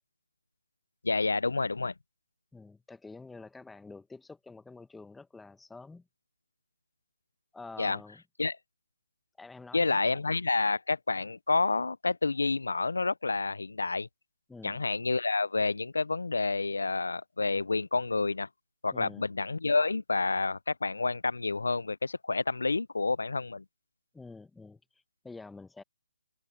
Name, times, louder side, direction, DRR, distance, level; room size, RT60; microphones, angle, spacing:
voice 1, 1.0-1.9 7.8-8.0 8.4-8.6 9.7-14.1 14.6-18.5 18.8-23.6, left 3 dB, 85° left, 0.4 m, -29 dB
voice 2, 2.5-6.1 7.5-8.2 9.4-10.2 14.5-14.8 18.9-19.3 24.1-25.8, left 3 dB, 5° left, 0.9 m, -48 dB
hypercardioid pair, 165°, 0 cm